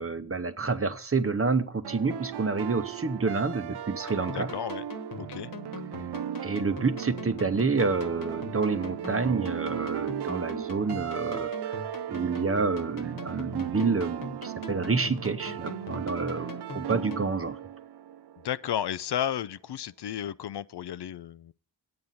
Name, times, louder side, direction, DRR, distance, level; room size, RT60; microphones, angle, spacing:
voice 1, 0.0-4.5 6.4-11.8 12.1-17.6, right 4 dB, 30° right, 0.8 m, -28 dB
sound 1, 1.8-18.7, right 10 dB, 65° right, 0.5 m, -37 dB
Dry Saw, 4.1-17.3, left 2 dB, 50° left, 1.3 m, -42 dB
voice 2, 4.3-4.8 5.2-5.5 18.4-21.5, left 10 dB, 65° left, 0.5 m, -33 dB
9.3 x 8.7 x 4.1 m
wide cardioid pair, 105°, 43 cm